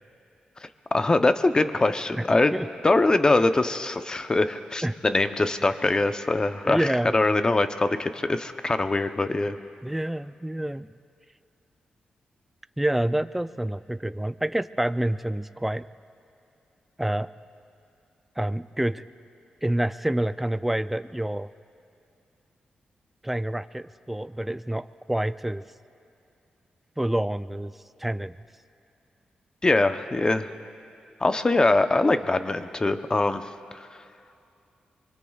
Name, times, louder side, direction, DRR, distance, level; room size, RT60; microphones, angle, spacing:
voice 1, 0.6-2.5 2.8-9.6 29.6-30.5 31.2-33.9, left 2 dB, 25° left, 9 dB, 0.8 m, -23 dB
voice 2, 6.7-7.1 9.8-10.9 12.8-15.9 17.0-17.3 18.4-19.0 19.6-21.5 23.2-25.6 27.0-27.7 28.0-28.4, right 1 dB, 5° right, 13 dB, 0.4 m, -27 dB
24.5 x 24.0 x 2.4 m, 2.6 s
cardioid pair, 75°, 3 cm